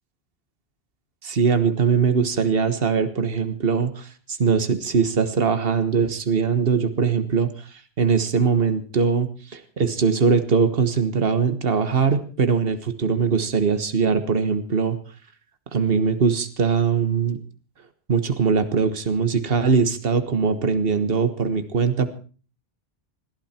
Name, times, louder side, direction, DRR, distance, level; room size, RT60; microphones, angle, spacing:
voice 1, 1.2-15.0 15.7-17.4 18.1-22.1, right 5 dB, 65° right, 10 dB, 1.6 m, -21 dB
21.0 x 15.0 x 4.4 m, 0.39 s
omnidirectional pair, 1.0 m